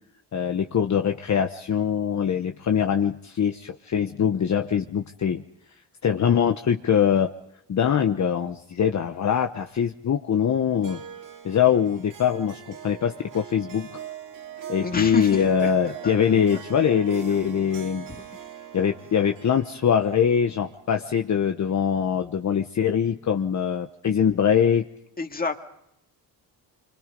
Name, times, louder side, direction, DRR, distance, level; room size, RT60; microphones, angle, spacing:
voice 1, 0.3-5.4 6.0-7.3 7.7-11.0 11.4-13.9 14.7-18.0 18.7-24.9, left 8 dB, 45° left, 6 dB, 1.1 m, -23 dB
Harp, 10.8-21.4, right 9 dB, 50° right, 2.5 m, -42 dB
voice 2, 14.8-16.1 16.5-16.6 18.1-18.2 25.2-25.7, left 4 dB, 20° left, 5 dB, 2.1 m, -31 dB
26.5 x 24.5 x 5.3 m, 0.79 s
cardioid pair, 115°, 41 cm